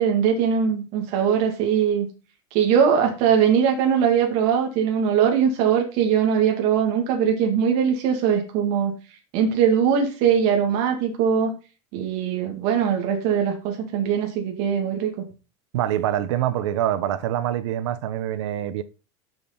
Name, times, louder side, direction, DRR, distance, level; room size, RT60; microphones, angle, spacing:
voice 1, 0.0-2.1 2.5-8.9 9.3-11.5 11.9-15.1, right 7 dB, 45° right, 2.3 m, -21 dB
voice 2, 15.7-18.8, right 11 dB, 70° right, 0.9 m, -25 dB
6.9 x 6.4 x 6.0 m
supercardioid pair, 165°, 15 cm